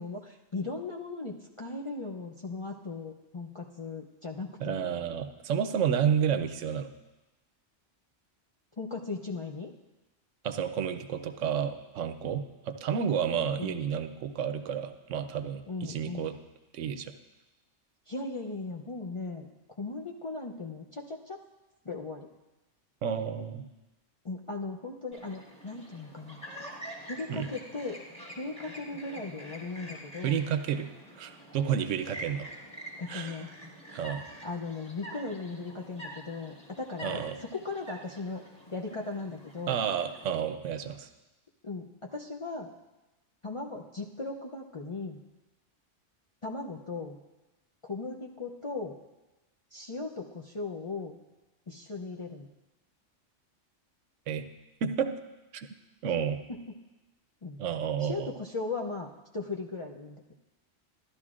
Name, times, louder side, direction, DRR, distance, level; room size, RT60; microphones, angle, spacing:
voice 1, 0.0-4.9 8.8-9.7 13.6-13.8 15.7-16.3 18.1-19.5 19.8-21.4 21.8-22.3 24.2-26.4 27.1-28.0 28.4-30.4 33.0-33.5 34.4-39.8 41.6-42.7 43.4-45.2 46.4-47.2 47.8-48.9 49.7-51.2 51.7-52.5 56.0-56.1 56.5-56.8 57.4-57.6 58.0-59.1 59.3-60.2, left 3 dB, 40° left, -1 dB, 0.5 m, -38 dB
voice 2, 4.6-6.9 10.4-16.4 16.7-17.1 23.0-23.6 27.3-27.5 30.2-32.5 33.1-33.4 33.9-34.2 37.0-37.4 39.7-41.1 54.3-54.4 54.8-55.1 55.5-55.7 56.0-56.4 57.6-58.3, right 8 dB, 80° right, 10 dB, 1.0 m, -31 dB
Chirp tweet, 25.1-40.3, equal, 5° left, 1.6 m, -46 dB
14.0 x 11.5 x 2.5 m, 1.1 s
omnidirectional pair, 1.2 m